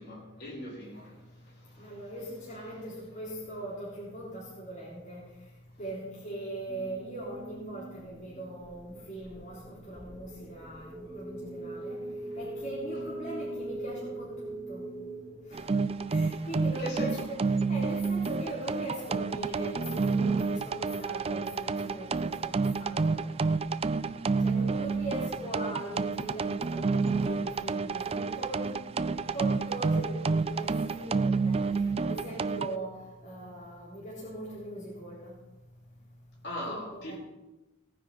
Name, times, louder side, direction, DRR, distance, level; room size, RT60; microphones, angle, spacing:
voice 1, 0.0-2.0 2.8-2.9 12.1-12.4 16.8-17.3 36.4-37.2, equal, 50° left, -4 dB, 4.5 m, -41 dB
voice 2, 1.8-5.2 5.8-12.0 12.4-14.9 15.5-15.7 16.1-23.3 24.4-28.8 29.1-31.6 32.0-35.3 36.7-37.2, right 1 dB, 35° left, -7 dB, 3.6 m, -40 dB
sound 1, 6.7-16.5, right 1 dB, 5° left, 2.3 m, -42 dB
sound 2, 15.5-32.8, right 4 dB, 30° right, 0.3 m, -29 dB
18.0 x 9.9 x 4.2 m, 1.0 s
head